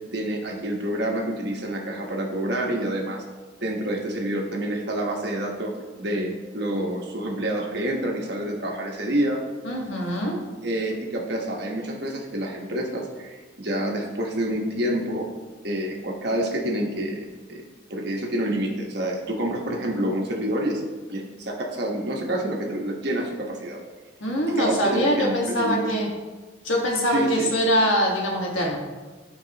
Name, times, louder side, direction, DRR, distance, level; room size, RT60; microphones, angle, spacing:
voice 1, 0.1-3.2 3.6-5.7 6.0-9.4 10.6-15.3 15.6-17.6 17.9-20.8 21.1-23.8 24.6-25.9 27.1-27.5, right 1 dB, 55° right, 0 dB, 1.2 m, -28 dB
voice 2, 9.6-10.4 24.2-26.1 26.6-28.8, equal, 80° left, -1 dB, 1.6 m, -23 dB
12.5 x 4.6 x 2.9 m, 1.3 s
head